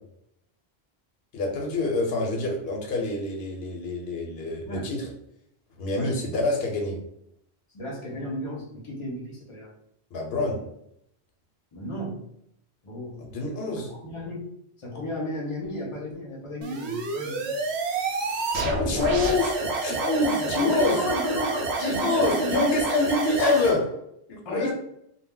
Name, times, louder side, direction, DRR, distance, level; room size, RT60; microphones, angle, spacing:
voice 1, 1.3-5.1 5.8-7.0 10.1-10.6 13.2-13.9 18.4-21.0 21.8-23.8 24.3-24.7, left 3 dB, 70° left, 1 dB, 0.9 m, -26 dB
voice 2, 7.7-9.7 11.7-12.2 12.8-13.2 13.8-14.4 14.8-17.5 20.6-22.7 24.4-24.7, left 1 dB, 35° left, -2 dB, 0.7 m, -33 dB
sound 1, 16.6-23.8, right 3 dB, 90° right, 0.8 m, -28 dB
2.2 x 2.1 x 3.6 m, 0.75 s
omnidirectional pair, 1.1 m